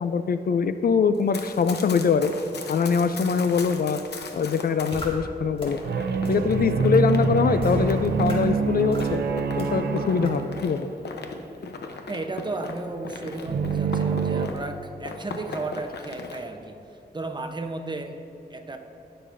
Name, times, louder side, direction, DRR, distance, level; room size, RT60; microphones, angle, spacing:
voice 1, 0.0-2.3 2.7-4.0 4.3-5.8 6.3-9.2 9.6-10.9, left 5 dB, 65° left, 11 dB, 0.4 m, -23 dB
Run, 1.1-5.1 5.7-14.8 15.0-16.4, left 4 dB, 85° left, 0.8 m, -39 dB
sound 1, 4.9-5.1 5.6-5.7 6.2-6.3 6.9-7.0 7.6-7.8 8.2-8.3 8.9-9.1 9.6-9.7 10.2-10.3, left 1 dB, 30° left, 2.0 m, -36 dB
sound 2, 5.8-11.3 13.5-14.5, right 5 dB, 85° right, 0.5 m, -25 dB
voice 2, 12.1-16.8 17.1-18.2 18.5-18.8, right 2 dB, 25° right, 5 dB, 0.8 m, -34 dB
17.5 x 6.7 x 2.6 m, 3.0 s
wide cardioid pair, 90°, 17 cm